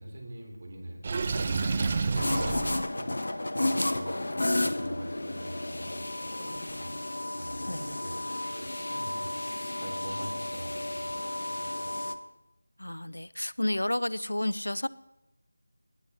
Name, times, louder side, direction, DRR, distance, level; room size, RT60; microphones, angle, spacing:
voice 1, 0.0-3.1 3.7-4.1 4.5-6.9 7.3-8.1 8.5-9.3 9.8-11.9, right 1 dB, 45° right, 0 dB, 3.0 m, -44 dB
Water / Sink (filling or washing), 1.0-2.8, right 4 dB, 30° right, 0.6 m, -29 dB
sound 1, 2.1-12.1, left 1 dB, 60° left, 0.9 m, -32 dB
voice 2, 12.8-14.9, left 1 dB, 80° left, 18 dB, 0.4 m, -31 dB
18.5 x 8.0 x 2.9 m, 0.95 s
figure-of-eight pair, 165°, 0 cm